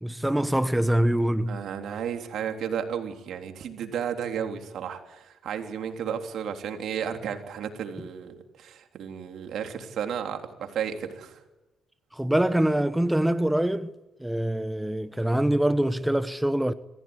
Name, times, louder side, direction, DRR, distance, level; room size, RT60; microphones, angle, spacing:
voice 1, 0.0-1.6 12.1-13.9 14.2-16.7, right 1 dB, 5° right, 1.1 m, -24 dB
voice 2, 1.5-11.4, right 8 dB, 70° right, 3.5 m, -33 dB
26.0 x 16.0 x 9.8 m
cardioid pair, 90°, 0 cm